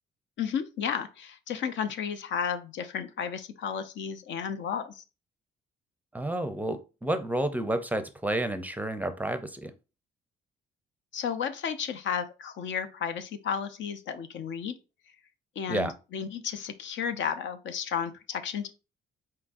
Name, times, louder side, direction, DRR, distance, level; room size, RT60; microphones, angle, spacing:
voice 1, 0.4-5.0 11.1-14.8 15.6-18.7, left 7 dB, 70° left, 0.6 m, -33 dB
voice 2, 6.1-9.7 15.7-15.9, right 1 dB, 10° right, 0.5 m, -30 dB
4.4 x 3.7 x 2.5 m
cardioid pair, 90°, 20 cm